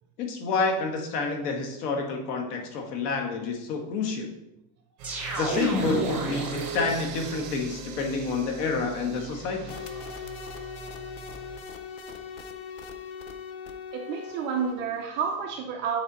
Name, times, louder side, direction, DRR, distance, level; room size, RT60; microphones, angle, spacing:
voice 1, 0.2-4.3 5.3-9.7, left 4 dB, 75° left, 3 dB, 1.7 m, -29 dB
sound 1, 5.0-7.3, right 1 dB, 5° right, 1.5 m, -30 dB
sound 2, 5.0-11.6, right 7 dB, 55° right, 1.3 m, -40 dB
sound 3, 9.7-15.1, left 6 dB, 35° left, 0.6 m, -40 dB
voice 2, 13.9-16.0, right 6 dB, 25° right, 1 dB, 0.4 m, -30 dB
8.6 x 4.1 x 4.2 m, 0.90 s
supercardioid pair, 150°, 47 cm